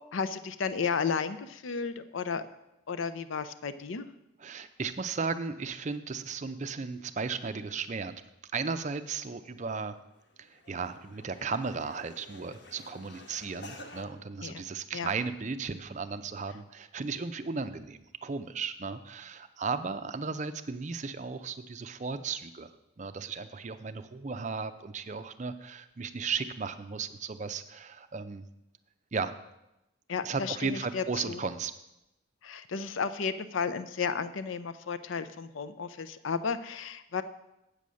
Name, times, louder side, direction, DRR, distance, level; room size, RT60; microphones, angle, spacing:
voice 1, 0.0-2.5 2.9-4.0 14.4-14.5 14.9-15.1 30.1-31.4 32.4-37.2, left 5 dB, 70° left, 12 dB, 0.5 m, -33 dB
voice 2, 4.4-8.1 8.5-9.9 10.4-22.7 23.0-28.5 29.1-29.3 30.2-31.7, right 4 dB, 35° right, 11 dB, 0.4 m, -35 dB
sound 1, 9.7-9.9 10.2-14.0, left 1 dB, 55° left, 1.2 m, -50 dB
8.4 x 7.0 x 6.3 m, 0.90 s
head